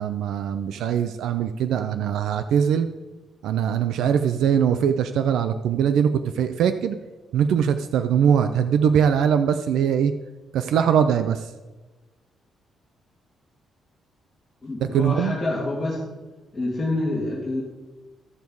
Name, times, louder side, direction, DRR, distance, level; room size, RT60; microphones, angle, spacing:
voice 1, 0.0-2.9 3.4-6.1 6.4-7.0 7.3-10.1 10.5-11.4 14.9-15.4, right 8 dB, 90° right, 9 dB, 0.5 m, -21 dB
voice 2, 14.6-16.1 16.5-17.6, left 2 dB, 15° left, -8 dB, 2.5 m, -27 dB
14.0 x 7.1 x 4.7 m, 1.2 s
cardioid pair, 150°, 0 cm